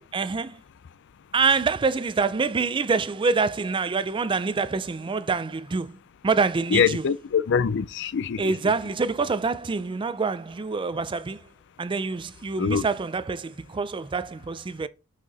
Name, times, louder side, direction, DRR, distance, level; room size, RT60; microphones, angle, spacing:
voice 1, 0.1-0.6 1.3-6.0 6.2-7.0 8.4-11.5 11.8-14.9, right 4 dB, 25° right, 0.4 m, -26 dB
voice 2, 6.7-8.5 12.6-12.8, left 6 dB, 60° left, 0.4 m, -23 dB
6.2 x 5.8 x 4.0 m
head